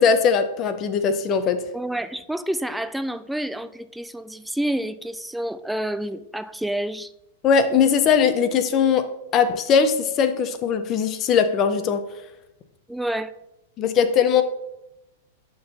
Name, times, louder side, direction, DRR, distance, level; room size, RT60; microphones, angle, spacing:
voice 1, 0.0-1.6 7.4-9.1 9.3-12.0 13.8-14.4, left 6 dB, 35° left, 9 dB, 0.7 m, -20 dB
voice 2, 1.7-7.1 12.9-13.3, right 1 dB, 5° right, 12 dB, 0.4 m, -28 dB
11.5 x 3.9 x 4.1 m, 0.89 s
hypercardioid pair, 125°, 0 cm